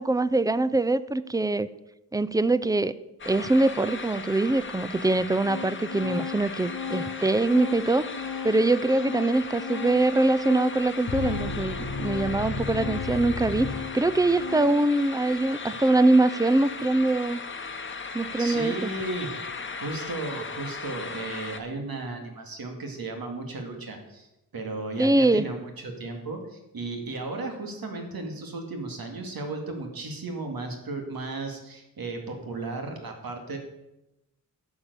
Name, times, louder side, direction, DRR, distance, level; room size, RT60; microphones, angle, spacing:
voice 1, 0.0-1.7 2.1-2.9 3.3-8.1 8.4-17.4 18.1-18.9 25.0-25.5, right 2 dB, 10° right, 16 dB, 0.4 m, -23 dB
sound 1, 3.2-21.6, left 4 dB, 35° left, 0.9 m, -38 dB
Organ, 3.7-3.8 4.7-4.8 5.1-15.0, left 6 dB, 90° left, 1.1 m, -37 dB
sound 2, 11.1-14.5, left 4 dB, 60° left, 1.2 m, -33 dB
voice 2, 18.4-19.3 19.8-24.3 24.5-33.6, right 2 dB, 80° right, 3 dB, 2.3 m, -35 dB
11.5 x 7.2 x 6.9 m, 0.92 s
wide cardioid pair, 125°, 35 cm